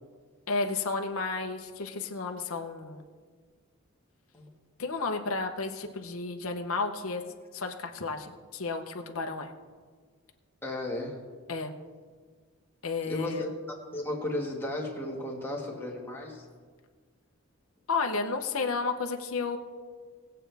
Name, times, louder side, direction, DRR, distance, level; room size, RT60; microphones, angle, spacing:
voice 1, 0.5-3.0 4.8-7.2 7.5-9.5 11.5-11.7 12.8-13.5 17.9-19.6, left 4 dB, 65° left, 4 dB, 0.9 m, -32 dB
voice 2, 10.6-11.2 13.1-13.5 13.9-16.4, left 1 dB, 10° left, -2 dB, 1.7 m, -34 dB
19.5 x 7.7 x 3.4 m, 1.6 s
head